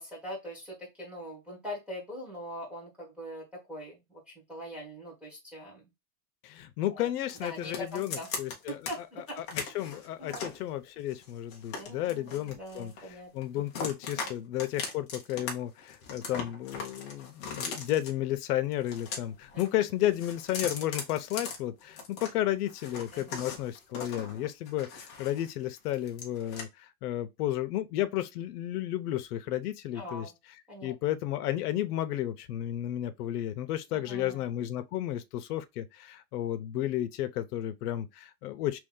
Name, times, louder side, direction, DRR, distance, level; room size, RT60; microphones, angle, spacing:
voice 1, 0.0-4.2 4.5-5.8 6.9-7.1 7.4-8.3 8.7-9.4 10.2-10.5 11.7-13.6 14.1-14.3 19.5-19.6 23.1-23.5 29.9-30.3 30.7-30.9 33.9-34.4, equal, 5° right, 1.2 m, -42 dB
voice 2, 6.4-8.8 9.4-30.3 30.8-38.8, left 13 dB, 90° left, 0.7 m, -33 dB
sound 1, 7.3-8.9 9.3-10.6 11.1-13.1 13.4-14.3 14.6-15.5 15.8-18.1 18.7-19.7 20.0-22.3 22.7-25.5 25.8-26.6, left 5 dB, 20° left, 0.4 m, -39 dB
3.0 x 2.7 x 3.7 m
supercardioid pair, 175°, 45 cm